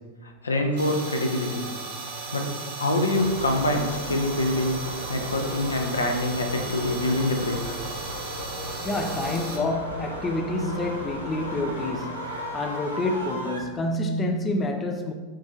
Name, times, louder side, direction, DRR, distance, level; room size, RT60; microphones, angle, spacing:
voice 1, 0.2-1.7 2.3-2.5 2.8-4.8 5.1-7.8, left 1 dB, 75° left, 0.5 m, -25 dB
sound 1, 0.8-9.6, right 3 dB, 45° right, 0.8 m, -36 dB
sound 2, 3.1-13.6, equal, 90° right, 0.8 m, -36 dB
voice 2, 8.8-15.1, left 2 dB, 20° left, 0.4 m, -28 dB
7.4 x 2.6 x 2.7 m
figure-of-eight pair, 90°, 0 cm